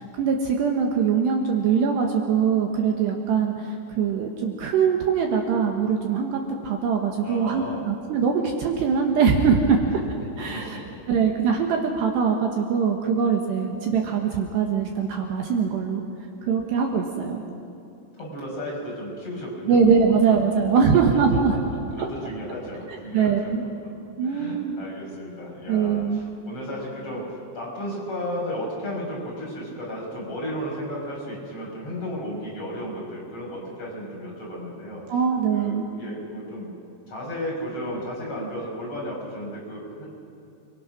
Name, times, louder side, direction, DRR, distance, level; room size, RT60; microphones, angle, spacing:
voice 1, 0.0-9.8 10.4-10.8 11.1-16.0 16.5-17.4 19.7-21.5 23.1-23.6 24.2-24.7 25.7-26.2 35.1-35.8, right 6 dB, 70° right, 2 dB, 3.3 m, -22 dB
voice 2, 7.2-7.9 10.5-11.0 18.1-19.8 21.3-21.6 21.9-23.5 24.2-35.0 35.5-36.7 37.1-40.1, equal, 30° left, -4 dB, 6.6 m, -34 dB
29.0 x 23.0 x 6.1 m, 2.7 s
omnidirectional pair, 5.7 m